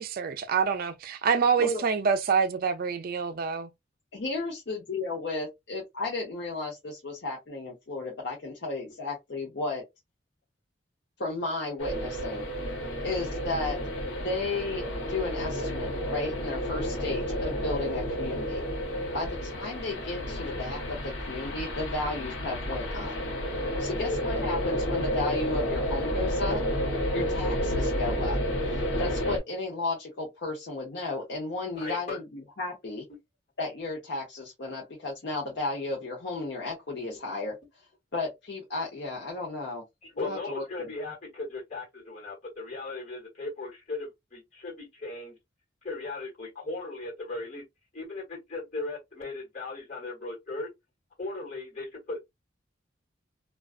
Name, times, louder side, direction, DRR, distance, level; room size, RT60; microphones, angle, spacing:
voice 1, 0.0-3.7, right 6 dB, 50° right, 0.4 m, -26 dB
voice 2, 4.1-9.8 11.2-12.5 13.0-13.8 14.2-18.6 19.1-23.2 23.8-26.6 27.1-28.4 28.7-33.1 33.6-37.6 38.1-39.8 40.2-40.6, left 3 dB, 60° left, 0.7 m, -34 dB
sound 1, 11.8-29.4, equal, 85° left, 0.9 m, -31 dB
voice 3, 23.6-24.2 31.7-32.2 40.0-45.4 45.8-47.6 47.9-50.7 51.2-52.2, left 3 dB, 40° left, 1.4 m, -37 dB
2.3 x 2.3 x 2.3 m
head